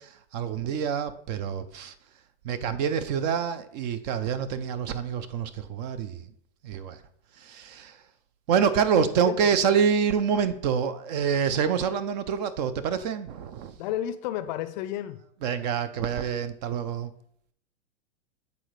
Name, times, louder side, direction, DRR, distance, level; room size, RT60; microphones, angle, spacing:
voice 1, 0.0-1.9 2.4-6.3 6.6-7.0 7.3-8.1 8.5-13.8 15.4-17.1, right 7 dB, 40° right, 0.4 m, -27 dB
voice 2, 8.9-9.5 13.8-15.2, left 11 dB, 45° left, 0.5 m, -32 dB
8.4 x 3.9 x 3.1 m
hypercardioid pair, 115°, 34 cm